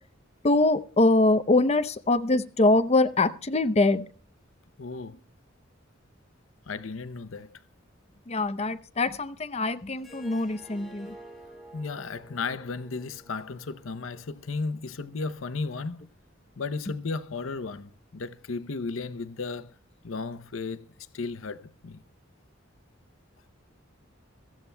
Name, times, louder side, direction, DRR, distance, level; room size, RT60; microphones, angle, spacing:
voice 1, 0.4-4.0 8.3-11.1, left 2 dB, 35° left, 0.7 m, -23 dB
voice 2, 4.8-5.2 6.7-7.6 11.7-16.1 16.6-19.7 20.0-20.9 21.1-22.0, left 4 dB, 90° left, 0.7 m, -34 dB
Harp, 10.0-15.1, equal, ahead, 4.2 m, -50 dB
23.5 x 14.0 x 2.2 m
head